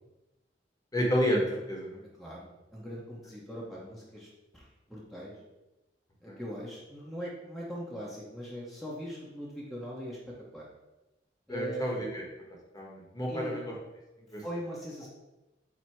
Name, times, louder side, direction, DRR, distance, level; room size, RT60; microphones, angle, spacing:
voice 1, 0.9-2.0 6.3-6.4 11.5-12.2 12.7-13.7 14.3-14.4, equal, 20° left, -2 dB, 1.2 m, -30 dB
voice 2, 2.2-4.3 4.5-5.3 6.2-10.2 10.5-10.7 11.5-11.9 13.3-13.6 14.4-15.1, equal, ahead, -6 dB, 1.0 m, -40 dB
7.3 x 2.9 x 4.6 m, 1.0 s
head